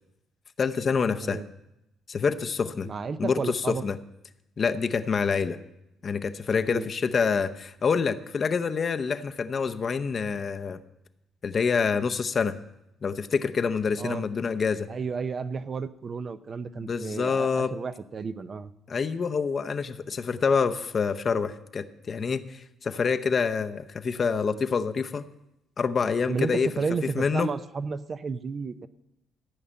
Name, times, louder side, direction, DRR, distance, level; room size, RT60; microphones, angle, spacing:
voice 1, 0.6-1.4 2.1-2.9 3.2-3.4 3.7-4.0 4.6-5.6 6.0-10.8 11.4-12.6 13.0-14.9 16.8-17.7 18.9-25.3 25.8-26.7 27.2-27.5, left 5 dB, 40° left, 9 dB, 0.7 m, -26 dB
voice 2, 2.8-3.8 6.6-6.9 14.0-14.3 14.9-18.7 26.3-28.9, right 5 dB, 35° right, 12 dB, 0.6 m, -32 dB
14.5 x 5.6 x 8.7 m, 0.88 s
cardioid pair, 115°, 0 cm